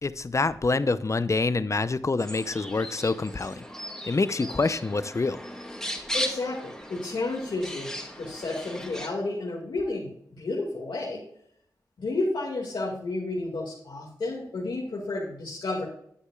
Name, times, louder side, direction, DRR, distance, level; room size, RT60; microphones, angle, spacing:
voice 1, 0.0-3.6 4.1-5.4, left 3 dB, 40° left, 14 dB, 0.6 m, -26 dB
sound 1, 2.2-9.1, equal, 5° left, 2.3 m, -37 dB
voice 2, 6.1-7.9 8.1-10.1 10.4-11.2 12.0-15.8, left 2 dB, 80° left, -4 dB, 2.1 m, -31 dB
9.8 x 8.1 x 2.4 m, 0.68 s
cardioid pair, 40°, 8 cm